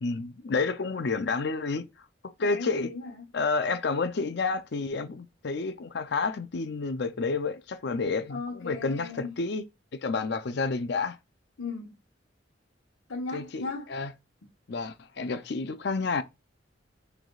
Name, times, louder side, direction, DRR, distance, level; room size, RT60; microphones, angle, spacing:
voice 1, 0.0-1.8 2.2-2.9 3.3-9.6 10.0-11.2 13.3-14.1 14.7-16.2, left 4 dB, 60° left, 0.5 m, -30 dB
voice 2, 2.4-3.3 8.3-9.3 11.6-11.9 13.1-13.9, left 3 dB, 85° left, 1.1 m, -37 dB
6.1 x 3.4 x 2.3 m
head